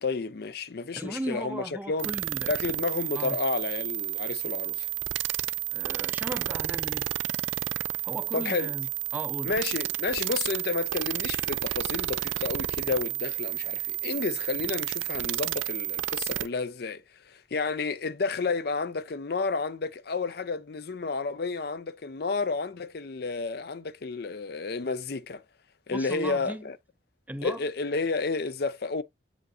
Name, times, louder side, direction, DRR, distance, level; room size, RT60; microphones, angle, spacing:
voice 1, 0.0-2.1 2.5-4.9 8.3-8.7 9.4-25.4 25.9-26.8 27.4-29.0, left 4 dB, 55° left, 0.5 m, -31 dB
voice 2, 0.9-2.5 3.2-3.4 5.7-7.1 8.0-8.9 9.1-9.5 25.9-26.7 27.3-27.6, right 1 dB, 10° right, 0.5 m, -36 dB
sound 1, 2.0-16.5, right 14 dB, 85° right, 0.5 m, -31 dB
7.7 x 5.0 x 2.6 m
head